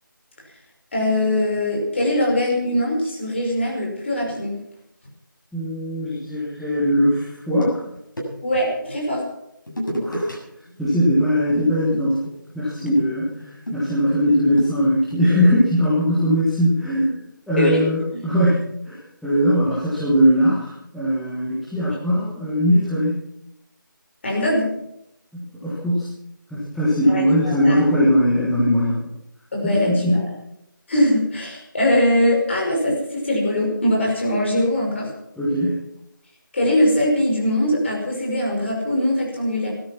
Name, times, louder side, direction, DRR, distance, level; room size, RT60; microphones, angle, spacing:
voice 1, 0.9-4.6 8.4-9.2 12.8-12.9 17.6-17.9 18.1-18.3 24.2-24.8 27.1-27.8 29.5-30.2 30.9-35.1 36.5-39.7, left 1 dB, 35° left, -1 dB, 5.5 m, -21 dB
voice 2, 5.5-7.8 10.0-10.3 10.8-12.2 12.5-17.2 17.5-23.2 25.3-26.1 26.5-29.1 29.6-30.2 35.4-35.8, equal, ahead, -12 dB, 1.3 m, -20 dB
sound 1, 7.3-8.7 9.7-10.4 10.7-10.9 11.2-15.3, equal, 70° left, 7.4 m, -32 dB
17.0 x 13.0 x 5.9 m, 0.79 s
figure-of-eight pair, 170°, 11 cm